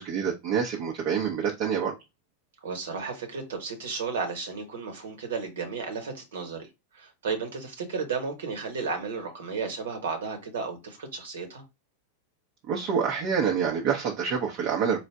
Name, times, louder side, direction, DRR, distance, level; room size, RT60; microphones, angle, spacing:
voice 1, 0.0-2.0 12.7-15.0, right 7 dB, 40° right, 0.8 m, -27 dB
voice 2, 2.6-6.7 6.9-11.6, right 5 dB, 60° right, 1.3 m, -33 dB
4.5 x 2.4 x 3.5 m
figure-of-eight pair, 90°, 0 cm